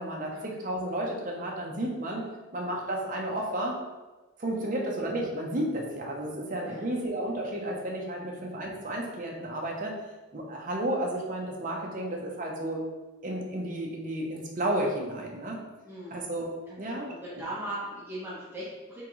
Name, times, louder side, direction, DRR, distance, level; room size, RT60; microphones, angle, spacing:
voice 1, 0.0-2.2 2.5-3.8 4.4-10.0 10.3-12.8 13.2-15.6 16.1-16.5 16.8-17.4, right 1 dB, 40° right, -1 dB, 0.7 m, -32 dB
voice 2, 4.5-4.9 6.6-6.8 8.2-8.3 15.8-16.2 16.7-19.0, right 1 dB, 10° right, -9 dB, 1.0 m, -39 dB
3.6 x 3.5 x 3.0 m, 1.2 s
head